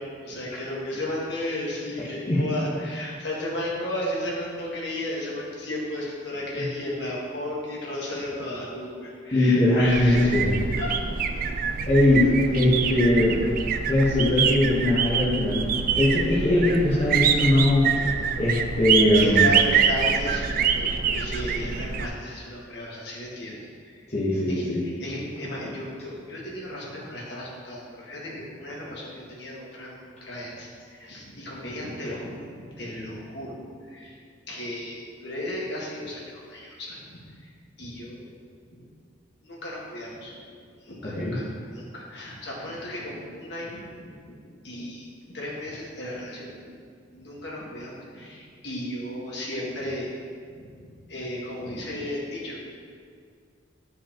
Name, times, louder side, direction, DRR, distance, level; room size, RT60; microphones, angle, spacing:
voice 1, 0.0-10.4 10.7-11.3 12.2-12.3 19.1-23.6 23.8-24.0 24.5-34.2 34.5-37.5 37.8-38.2 38.8-38.9 39.4-40.3 40.8-41.4 41.7-44.4 44.6-46.8 47.1-50.1 50.4-52.7, left 1 dB, 60° left, -5 dB, 1.6 m, -34 dB
voice 2, 9.3-10.5 11.9-13.4 13.9-15.7 15.9-17.9 18.3-19.4 24.1-24.8 41.0-41.3, left 1 dB, 35° left, -8 dB, 1.1 m, -21 dB
sound 1, 9.8-22.1, right 6 dB, 45° right, 0.3 m, -25 dB
11.0 x 5.0 x 2.9 m, 2.1 s
head